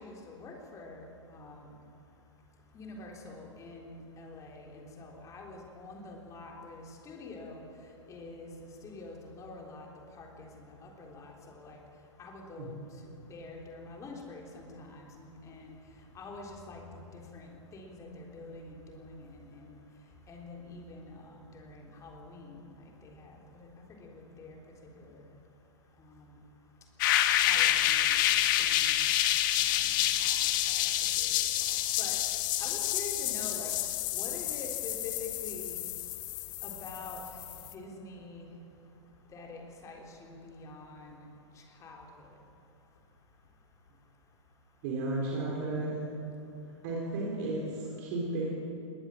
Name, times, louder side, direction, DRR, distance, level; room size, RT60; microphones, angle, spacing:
voice 1, 0.0-1.7 2.7-7.6 8.1-9.9 10.2-11.8 12.2-12.8 13.3-15.7 16.1-16.8 17.1-19.8 20.3-22.7 23.0-24.6 25.0-25.2 26.0-26.3 27.4-29.1 29.6-30.4 30.7-32.2 32.6-33.7 34.1-35.8 36.6-37.3 37.7-38.5 39.3-41.2 41.8-42.1, left 3 dB, 20° left, 1 dB, 3.7 m, -46 dB
sound 1, 27.0-37.7, left 13 dB, 40° left, 1.2 m, -28 dB
voice 2, 44.8-45.9 46.8-48.4, right 2 dB, 40° right, -2 dB, 4.0 m, -33 dB
21.0 x 18.0 x 7.5 m, 2.6 s
figure-of-eight pair, 110°, 16 cm